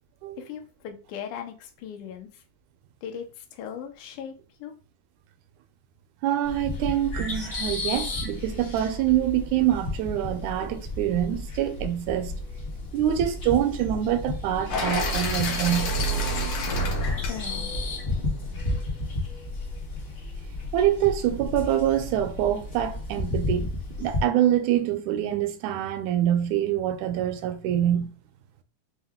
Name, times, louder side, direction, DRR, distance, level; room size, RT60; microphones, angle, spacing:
voice 1, 0.4-2.4 3.0-4.3 4.6-4.7 17.3-17.7, left 8 dB, 90° left, 2.2 m, -38 dB
voice 2, 6.2-12.3 12.9-15.9 20.7-28.1, right 11 dB, 80° right, 1.9 m, -25 dB
sound 1, 6.4-24.2, left 2 dB, 55° left, 0.9 m, -33 dB
sound 2, 14.7-18.7, equal, 70° left, 1.3 m, -29 dB
5.4 x 2.2 x 3.5 m
omnidirectional pair, 3.6 m